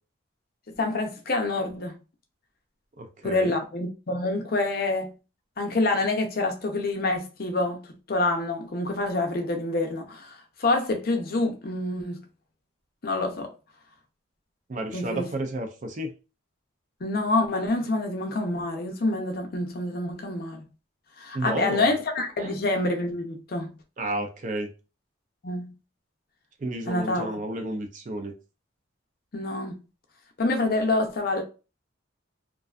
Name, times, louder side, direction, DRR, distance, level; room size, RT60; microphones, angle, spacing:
voice 1, 0.8-2.0 3.2-5.1 5.6-7.8 8.1-12.2 13.0-13.5 14.9-15.3 17.0-20.6 21.2-23.7 25.4-25.7 26.9-27.4 29.3-29.8 30.4-31.4, left 2 dB, 45° left, 0.5 m, -27 dB
voice 2, 3.0-3.6 14.7-16.1 21.3-21.9 22.4-22.5 24.0-24.7 26.6-28.3, right 1 dB, 40° right, 0.4 m, -32 dB
2.5 x 2.2 x 2.3 m
head